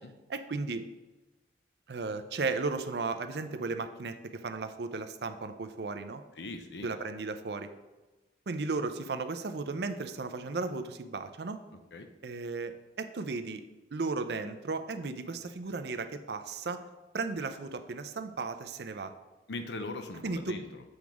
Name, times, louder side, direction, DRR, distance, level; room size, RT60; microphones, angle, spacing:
voice 1, 0.3-0.9 1.9-6.2 6.8-7.7 8.5-11.6 12.2-12.7 13.0-13.6 13.9-16.8 17.1-19.1 20.2-20.6, right 3 dB, 70° right, 9 dB, 0.5 m, -35 dB
voice 2, 6.4-6.9 11.9-12.1 19.5-20.8, left 2 dB, 75° left, 7 dB, 0.7 m, -40 dB
7.9 x 3.5 x 6.0 m, 1.1 s
head